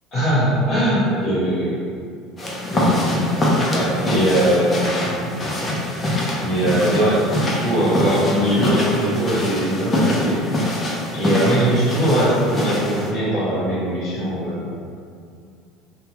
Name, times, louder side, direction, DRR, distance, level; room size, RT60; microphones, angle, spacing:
voice 1, 0.1-1.7 2.7-5.3 5.8-5.9 6.4-10.4 11.1-14.7, right 1 dB, 55° left, -11 dB, 1.0 m, -21 dB
sound 1, 2.4-13.1, left 1 dB, 25° left, 0.7 m, -23 dB
2.9 x 2.3 x 2.9 m, 2.4 s
supercardioid pair, 90°, 0 cm